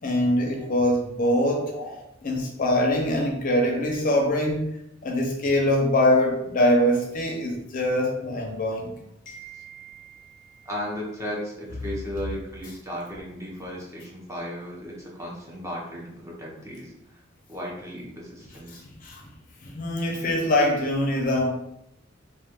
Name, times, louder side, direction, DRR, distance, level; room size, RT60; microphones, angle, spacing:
voice 1, 0.0-1.7 2.2-4.8 5.0-8.9 9.3-10.7 18.7-19.2 19.6-21.5, left 1 dB, 45° left, 1 dB, 0.5 m, -24 dB
voice 2, 1.7-2.0 10.7-16.9 17.5-18.8, equal, 15° right, -4 dB, 0.6 m, -35 dB
2.2 x 2.1 x 2.8 m, 0.80 s
head